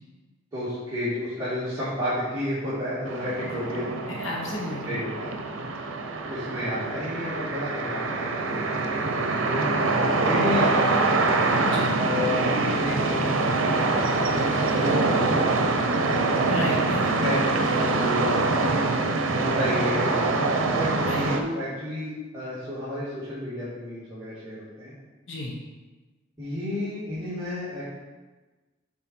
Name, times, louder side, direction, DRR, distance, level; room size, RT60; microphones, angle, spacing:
voice 1, 0.5-4.0 4.9-5.3 6.3-9.7 10.2-10.9 12.0-16.3 17.2-18.5 19.4-20.4 20.7-24.9 26.4-27.9, left 1 dB, 20° right, -13 dB, 2.2 m, -31 dB
sound 1, 3.1-21.4, right 3 dB, 90° right, 0.7 m, -24 dB
voice 2, 4.1-5.0 11.6-11.9 16.5-17.1 21.1-21.2 25.3-25.5, left 2 dB, 75° left, -2 dB, 1.2 m, -32 dB
7.5 x 4.4 x 4.5 m, 1.2 s
head